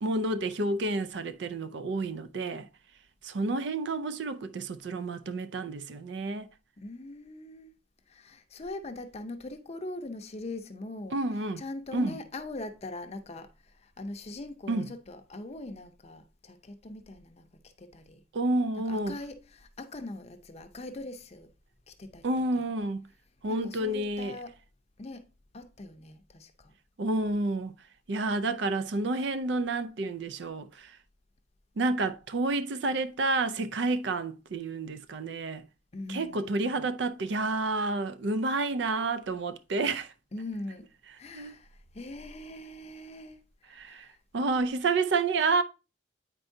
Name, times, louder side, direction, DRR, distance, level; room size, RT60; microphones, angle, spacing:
voice 1, 0.0-2.7 3.2-6.5 11.1-11.6 11.9-12.2 14.7-14.9 18.3-19.2 22.2-23.1 23.4-24.4 27.0-27.7 28.1-30.9 31.8-35.7 36.1-40.1 41.3-41.5 43.7-44.1 44.3-45.6, right 2 dB, 65° right, 0.4 m, -29 dB
voice 2, 6.8-7.7 8.1-11.2 11.6-17.5 17.8-18.2 18.9-21.5 21.9-22.3 22.5-22.7 23.5-24.6 25.0-25.3 25.5-26.7 35.9-36.9 40.3-40.9 41.2-44.2, left 2 dB, 35° left, 0.6 m, -42 dB
8.6 x 4.5 x 2.6 m
head